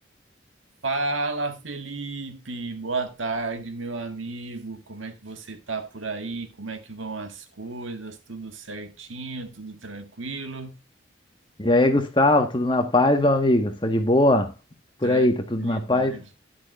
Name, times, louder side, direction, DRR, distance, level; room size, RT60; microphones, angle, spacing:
voice 1, 0.8-10.8 15.0-15.3 15.6-16.2, right 3 dB, 90° right, 1.8 m, -33 dB
voice 2, 11.6-14.5 15.0-16.2, left 1 dB, 25° left, 1.5 m, -20 dB
11.0 x 11.0 x 2.5 m
head